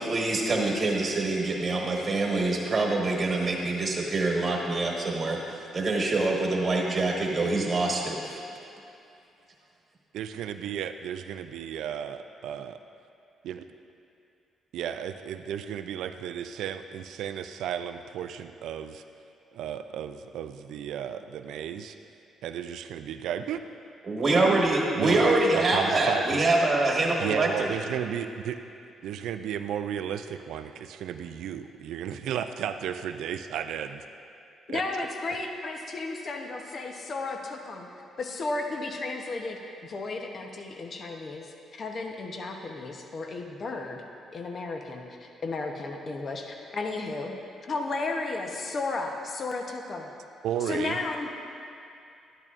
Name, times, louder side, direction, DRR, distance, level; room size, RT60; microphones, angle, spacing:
voice 1, 0.0-8.4 24.0-27.8, right 2 dB, 35° right, -1 dB, 1.3 m, -25 dB
voice 2, 10.1-12.8 14.7-19.0 19.5-21.9 22.4-23.6 24.4-24.6 25.0-25.3 25.7-26.2 27.2-28.6 29.0-34.0 34.7-34.8 50.4-51.0, right 9 dB, 80° right, 8 dB, 0.3 m, -33 dB
voice 3, 34.7-37.9 38.2-44.0 44.3-47.3 47.6-50.1 50.6-51.3, left 3 dB, 45° left, 3 dB, 0.8 m, -34 dB
12.5 x 10.5 x 2.5 m, 2.6 s
cardioid pair, 90°, 0 cm